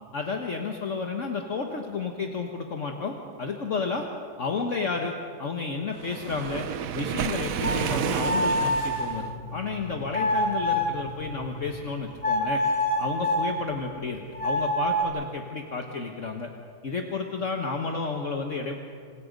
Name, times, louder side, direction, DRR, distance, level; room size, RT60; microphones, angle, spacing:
voice 1, 0.1-4.1 4.4-6.7 6.9-12.6 13.0-16.5 16.8-18.8, left 4 dB, 50° left, 3 dB, 1.6 m, -31 dB
Waves surf, 6.0-9.3, right 9 dB, 65° right, 1.1 m, -30 dB
sound 1, 7.5-11.9 12.2-13.5 14.3-15.0, left 1 dB, 20° left, 4.0 m, -27 dB
27.5 x 27.5 x 5.3 m, 2.3 s
omnidirectional pair, 1.7 m